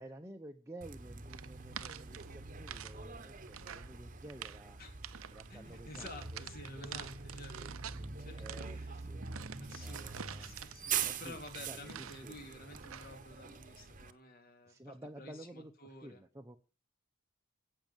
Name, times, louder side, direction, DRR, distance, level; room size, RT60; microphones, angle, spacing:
voice 1, 0.0-4.8 5.3-6.4 7.4-7.7 8.4-9.2 9.8-10.6 11.0-11.4 11.7-12.4 14.7-16.6, right 1 dB, 15° right, 3 dB, 1.0 m, -52 dB
Bus, 0.8-14.1, right 6 dB, 40° right, 1.1 m, -44 dB
sound 1, 1.3-3.0 3.2-3.9 4.2-4.6 5.0-5.5 5.9-8.1 8.4-12.4 12.7-13.2, right 9 dB, 80° right, 0.8 m, -47 dB
voice 2, 5.5-7.6 7.8-9.0 9.6-16.2, left 2 dB, 45° left, 5 dB, 3.3 m, -52 dB
16.5 x 6.6 x 9.2 m, 0.36 s
head